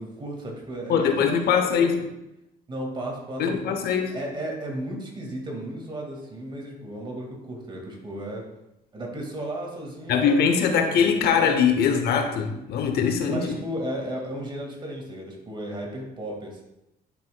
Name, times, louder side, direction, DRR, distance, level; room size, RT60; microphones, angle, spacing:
voice 1, 0.0-2.0 2.7-3.8 4.1-8.4 8.9-11.1 11.4-11.6 12.5-13.0 13.3-16.6, right 1 dB, 30° right, 0 dB, 1.9 m, -34 dB
voice 2, 0.9-2.1 3.4-4.1 10.1-13.6, left 6 dB, 70° left, 5 dB, 0.9 m, -22 dB
10.5 x 5.6 x 2.2 m, 0.88 s
cardioid pair, 110°, 17 cm